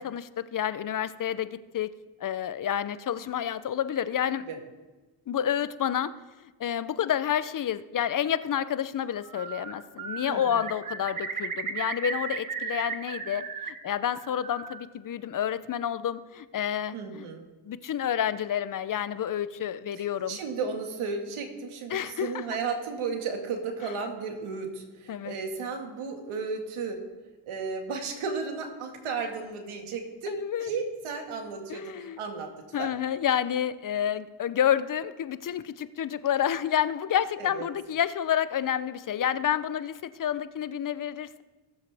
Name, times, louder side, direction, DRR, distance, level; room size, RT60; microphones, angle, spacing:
voice 1, 0.0-1.9 2.2-4.4 5.3-6.1 6.6-17.3 17.6-20.4 21.9-22.4 25.1-25.3 30.3-30.7 31.7-32.2 32.7-41.4, left 9 dB, 40° left, 15 dB, 0.6 m, -29 dB
Bird, 9.1-9.7 10.0-13.7 14.0-14.8, right 5 dB, 40° right, 1.3 m, -35 dB
voice 2, 10.3-10.6 16.9-17.4 20.0-27.0 27.5-32.9 37.4-37.6, right 4 dB, 80° right, 4 dB, 1.8 m, -34 dB
17.0 x 7.3 x 3.5 m, 1.2 s
cardioid pair, 65°, 49 cm